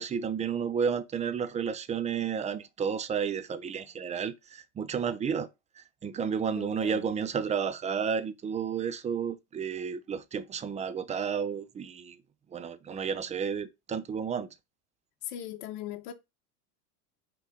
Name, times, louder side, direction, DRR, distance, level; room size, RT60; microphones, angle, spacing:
voice 1, 0.0-5.5 5.8-12.2 12.5-14.5, right 7 dB, 15° right, 0.5 m, -32 dB
voice 2, 6.6-7.1 15.2-16.1, left 12 dB, 65° left, 1.2 m, -39 dB
5.4 x 3.8 x 4.9 m
hypercardioid pair, 110°, 46 cm